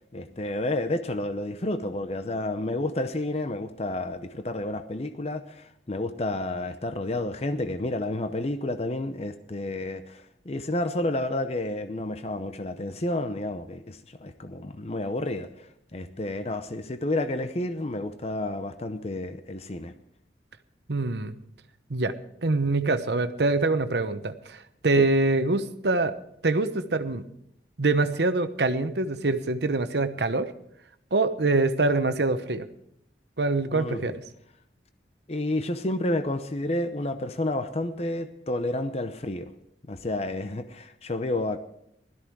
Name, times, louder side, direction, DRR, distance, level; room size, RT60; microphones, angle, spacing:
voice 1, 0.1-19.9 25.0-25.1 33.7-34.1 35.3-39.5 39.9-41.6, left 1 dB, 35° left, 10 dB, 0.7 m, -30 dB
voice 2, 20.9-21.3 21.9-22.1 22.4-26.2 26.4-27.2 27.8-30.5 31.1-32.7 33.4-34.1, right 3 dB, 65° right, 10 dB, 1.0 m, -24 dB
17.0 x 13.5 x 4.7 m, 0.74 s
head